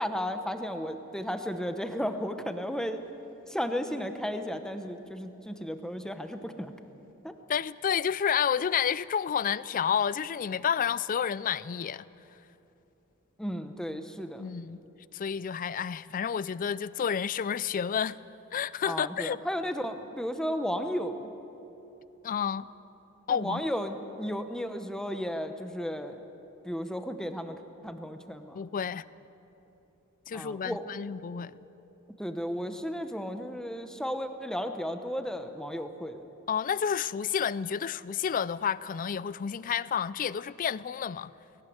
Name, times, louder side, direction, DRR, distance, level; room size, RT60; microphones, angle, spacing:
voice 1, 0.0-3.0 3.5-6.7 7.2-7.3 13.4-14.4 18.8-21.3 23.3-26.2 26.6-28.6 30.3-30.9 32.2-36.2, equal, 5° left, 0.9 m, -34 dB
voice 2, 7.5-12.0 14.4-14.8 15.1-18.2 18.5-19.4 22.2-22.7 23.3-23.6 28.5-29.0 30.3-31.5 36.5-41.3, left 7 dB, 40° left, 0.4 m, -30 dB
18.5 x 18.0 x 8.0 m
head